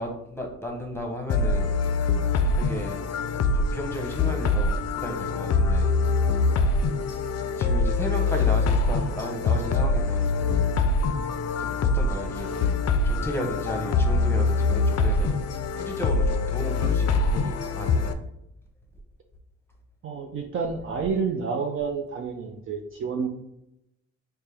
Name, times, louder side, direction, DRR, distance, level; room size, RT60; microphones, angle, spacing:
voice 1, 0.0-1.7 2.5-3.0 3.4-5.9 7.4-10.3 11.6-12.7 13.0-15.4 15.8-18.2, equal, 10° left, 1 dB, 0.9 m, -34 dB
sound 1, 1.3-18.1, left 3 dB, 55° left, 0.4 m, -24 dB
voice 2, 20.0-23.3, right 5 dB, 45° right, 2 dB, 0.5 m, -29 dB
4.3 x 2.2 x 3.3 m, 0.83 s
cardioid pair, 90°, 30 cm